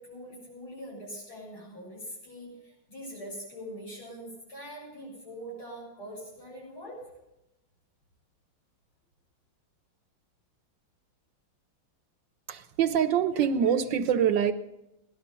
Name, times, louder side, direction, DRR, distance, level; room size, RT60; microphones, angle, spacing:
voice 1, 0.0-7.0, equal, 80° left, -4 dB, 8.3 m, -43 dB
voice 2, 12.5-14.5, right 8 dB, 70° right, 10 dB, 1.3 m, -25 dB
17.5 x 12.0 x 5.5 m, 0.88 s
omnidirectional pair, 2.3 m